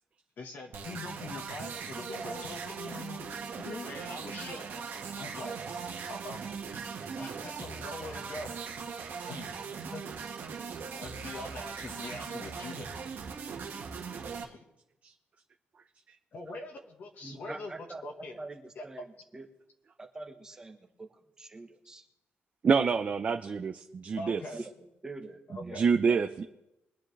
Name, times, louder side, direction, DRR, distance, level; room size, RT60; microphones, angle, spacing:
voice 1, 0.4-4.9 5.1-5.6 6.1-6.5 7.2-8.5 9.2-9.5 9.9-10.0 10.9-12.9 14.4-14.6 16.3-17.7 18.0-18.3 18.7-18.8 24.1-24.6 25.5-25.9, left 3 dB, 55° left, 1 dB, 1.5 m, -43 dB
sound 1, 0.7-14.4, right 6 dB, 65° right, 1.5 m, -39 dB
voice 2, 17.2-18.0 18.3-19.0 19.3-19.5 20.0-21.1 21.4-22.1 24.5-24.6 25.0-26.3, right 2 dB, 15° right, 5 dB, 1.2 m, -44 dB
voice 3, 22.6-24.4 25.7-26.4, right 5 dB, 35° right, 5 dB, 0.6 m, -26 dB
23.0 x 10.0 x 3.3 m, 0.89 s
wide cardioid pair, 175°, 4 cm